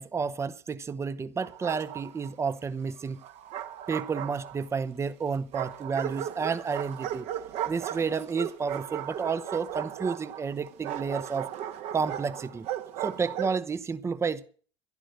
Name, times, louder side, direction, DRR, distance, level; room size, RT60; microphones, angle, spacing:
voice 1, 0.0-3.2 3.9-7.3 7.7-11.5 11.9-12.7 13.0-14.5, right 5 dB, 20° right, 0.8 m, -31 dB
Bark, 1.4-2.3 3.2-4.8 5.5-13.6, right 11 dB, 50° right, 1.2 m, -36 dB
12.0 x 11.5 x 6.4 m
figure-of-eight pair, 75°, 15 cm